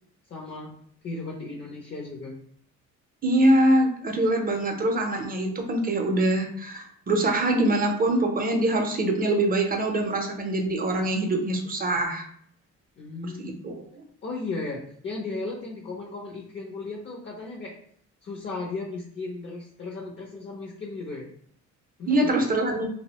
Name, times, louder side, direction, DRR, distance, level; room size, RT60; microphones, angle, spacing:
voice 1, 0.3-0.7 1.0-2.4 13.0-13.7 14.2-17.8 18.2-21.3 22.0-22.6, left 3 dB, 40° left, -1 dB, 0.5 m, -35 dB
voice 2, 3.2-12.2 13.4-13.7 22.1-22.9, right 1 dB, 30° right, 3 dB, 0.5 m, -24 dB
2.6 x 2.0 x 2.8 m, 0.62 s
cardioid pair, 90°, 30 cm